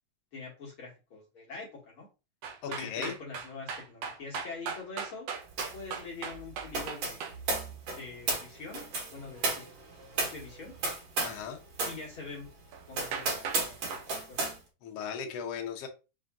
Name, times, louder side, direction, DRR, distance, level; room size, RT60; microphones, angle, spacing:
voice 1, 0.3-2.1 2.7-5.3 5.7-7.2 7.9-9.7 10.2-10.8 11.8-12.5 12.9-14.5, left 4 dB, 55° left, -5 dB, 1.6 m, -44 dB
sound 1, 2.4-7.4 12.7-12.8 13.1-13.6 13.9-14.1, right 6 dB, 75° right, 1.5 m, -37 dB
voice 2, 2.6-3.2 11.2-11.6 14.8-15.9, left 7 dB, 70° left, 2 dB, 1.5 m, -37 dB
sound 2, 5.6-5.9 6.1-11.5 11.7-12.0 12.4-12.5 12.9-14.6, right 3 dB, 50° right, 2.4 m, -33 dB
5.5 x 2.6 x 3.6 m, 0.30 s
omnidirectional pair, 4.0 m